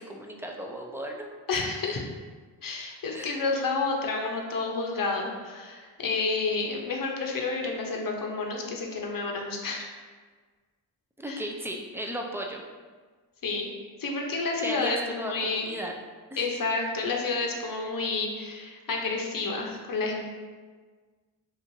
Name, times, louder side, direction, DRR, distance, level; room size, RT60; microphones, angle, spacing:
voice 1, 0.0-1.6 3.1-3.4 11.2-12.6 14.6-15.9 16.3-16.5, equal, 5° right, 1 dB, 0.3 m, -36 dB
voice 2, 1.5-2.0 2.6-9.9 11.3-11.4 13.4-13.7 14.0-15.7 16.4-20.3, left 3 dB, 50° left, 1 dB, 0.7 m, -30 dB
3.0 x 2.5 x 2.6 m, 1.4 s
supercardioid pair, 40°, 45 cm